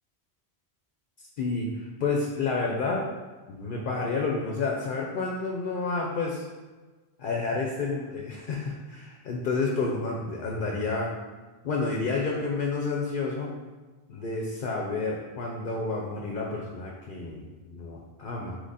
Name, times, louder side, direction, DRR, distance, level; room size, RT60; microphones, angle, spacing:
voice 1, 1.4-3.1 3.5-6.4 7.2-11.2 11.6-13.5 14.1-18.6, left 3 dB, 60° left, -1 dB, 0.7 m, -30 dB
3.6 x 3.1 x 4.0 m, 1.3 s
omnidirectional pair, 1.1 m